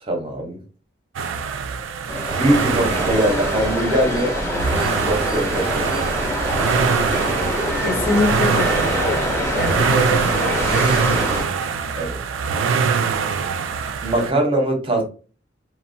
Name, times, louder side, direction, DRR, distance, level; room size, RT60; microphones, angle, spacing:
voice 1, 0.0-0.6 2.3-4.3 5.0-6.0 11.9-12.1 12.5-13.0 14.0-15.0, right 1 dB, 30° right, 2 dB, 0.7 m, -22 dB
sound 1, 1.1-14.3, right 6 dB, 75° right, 0.3 m, -23 dB
sound 2, 2.1-11.4, equal, 15° left, 0.5 m, -24 dB
voice 2, 7.8-11.1, left 2 dB, 50° left, 1 dB, 0.8 m, -25 dB
2.8 x 2.1 x 2.6 m, 0.36 s
head